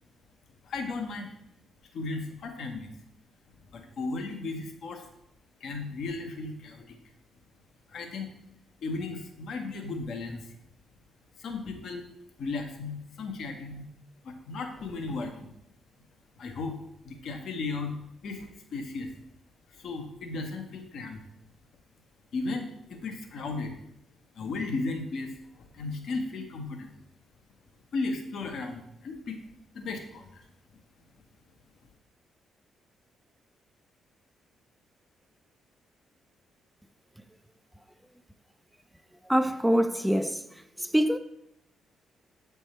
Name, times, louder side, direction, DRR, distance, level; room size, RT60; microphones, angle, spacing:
voice 1, 0.6-1.3 1.9-2.9 3.7-5.0 5.6-7.0 7.9-8.3 8.8-10.6 11.4-12.0 12.4-13.8 14.2-15.5 16.4-16.8 17.0-19.1 19.7-21.2 22.3-23.8 24.3-26.9 27.9-29.4 29.7-30.4, left 3 dB, 65° left, 0.9 m, -35 dB
voice 2, 39.3-40.4 40.8-41.2, equal, 5° right, 0.4 m, -24 dB
7.0 x 3.4 x 4.3 m
supercardioid pair, 55°, 0 cm